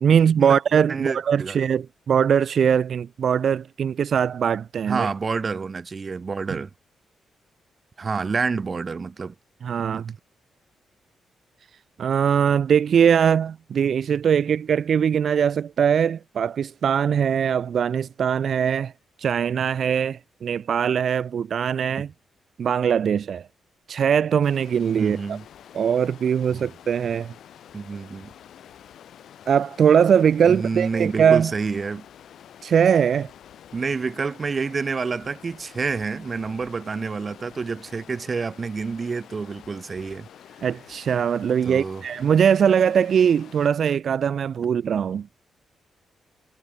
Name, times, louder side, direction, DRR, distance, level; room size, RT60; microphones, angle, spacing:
voice 1, 0.0-5.1 9.6-10.1 12.0-18.9 19.2-22.1 22.6-23.5 23.9-25.4 25.7-27.3 29.5-31.5 32.6-33.3 40.6-45.3, right 8 dB, 55° right, 1.7 m, -21 dB
voice 2, 0.9-1.6 4.9-6.7 8.0-9.3 9.9-10.0 22.0-22.1 25.0-25.4 26.5-26.7 27.7-28.3 30.5-32.1 33.7-40.3 41.6-42.0, right 4 dB, 30° right, 2.7 m, -28 dB
Stream, 24.4-43.7, left 10 dB, 70° left, 6.0 m, -48 dB
cardioid pair, 140°, 0 cm